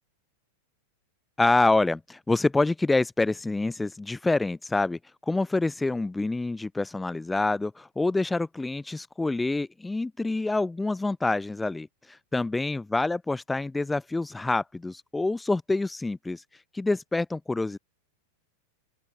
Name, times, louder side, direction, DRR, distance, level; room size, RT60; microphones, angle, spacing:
voice 1, 1.4-5.0 5.3-11.9 12.3-16.4 16.7-17.8, left 2 dB, 10° left, 5.7 m, -26 dB
open air
figure-of-eight pair, 90°, 0 cm